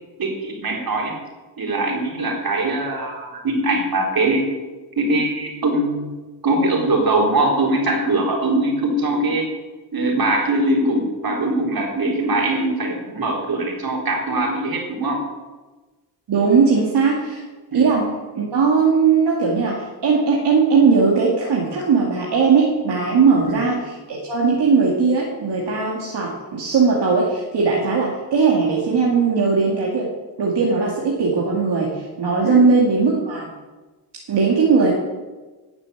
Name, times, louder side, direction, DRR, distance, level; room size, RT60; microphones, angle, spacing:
voice 1, 0.2-1.1 1.6-4.5 5.0-6.1 6.4-9.5 9.9-15.2 17.7-17.9 23.5-23.6 32.4-32.6, right 2 dB, 60° right, 0 dB, 4.2 m, -21 dB
voice 2, 16.3-17.4 17.7-18.0 18.3-30.1 30.4-33.5 34.3-34.9, right 5 dB, 80° right, -3 dB, 2.3 m, -18 dB
13.0 x 7.2 x 9.2 m, 1.3 s
cardioid pair, 60°, 40 cm